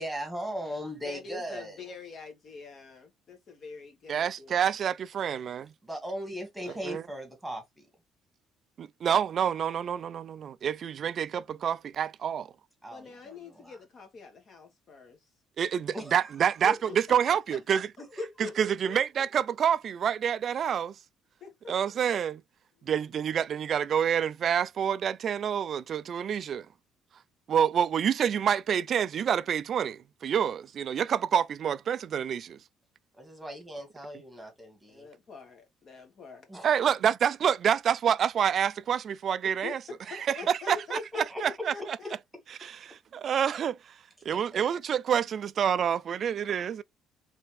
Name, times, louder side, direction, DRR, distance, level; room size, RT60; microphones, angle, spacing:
voice 1, 0.0-1.8 5.8-7.9 12.8-13.8 15.9-16.3 16.6-16.8 18.0-18.5 18.9-19.0 33.2-35.1 36.5-36.7 40.7-41.7 44.5-44.6, equal, 5° right, 1.6 m, -38 dB
voice 2, 1.0-4.7 6.6-6.8 12.9-15.2 16.9-17.0 17.3-17.8 18.2-18.3 18.7-19.0 21.4-21.7 22.8-22.9 34.9-36.5 39.6-42.1, left 5 dB, 40° left, 1.4 m, -46 dB
voice 3, 4.1-5.7 6.8-7.0 8.8-12.5 15.6-17.9 18.6-21.0 21.7-22.4 22.8-26.7 27.5-32.6 36.6-39.8 40.1-41.7 42.6-44.0 44.2-46.8, right 8 dB, 40° right, 0.3 m, -27 dB
4.2 x 3.4 x 3.3 m
cardioid pair, 155°, 0 cm